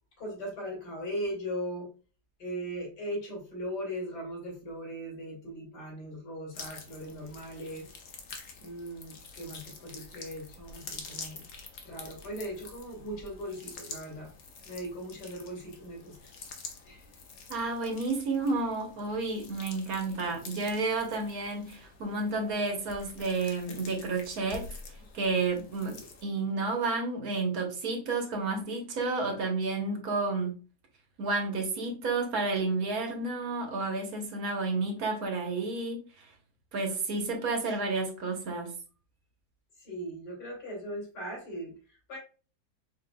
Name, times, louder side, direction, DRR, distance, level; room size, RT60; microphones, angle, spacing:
voice 1, 0.2-1.9 2.4-7.9 8.6-11.5 11.8-14.3 14.6-16.3 16.8-17.0 20.1-20.3 25.6-26.1 39.8-42.2, equal, 85° left, 2.6 m, -39 dB
sound 1, 6.5-26.2, left 4 dB, 55° left, 1.1 m, -47 dB
voice 2, 17.5-24.8 25.1-30.5 31.2-36.3 36.7-38.7, right 3 dB, 65° right, 1.4 m, -31 dB
5.0 x 3.8 x 2.2 m
omnidirectional pair, 1.8 m